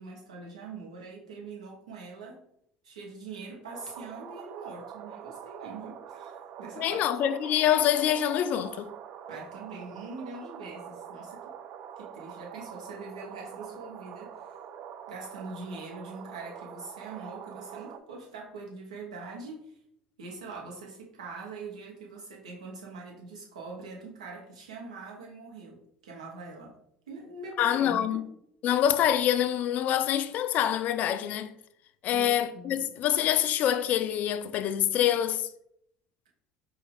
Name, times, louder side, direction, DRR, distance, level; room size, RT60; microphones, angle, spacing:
voice 1, 0.0-2.4 2.8-7.0 9.3-11.4 12.0-14.6 15.1-19.8 20.2-26.8 27.1-28.3 32.1-32.9, right 3 dB, 85° right, 1.0 m, -43 dB
sound 1, 3.7-18.0, right 8 dB, 50° right, 0.4 m, -45 dB
voice 2, 6.8-8.9 27.6-28.2 28.6-31.5 32.0-35.5, left 10 dB, 50° left, 0.3 m, -26 dB
4.5 x 2.4 x 3.6 m
hypercardioid pair, 70°, 3 cm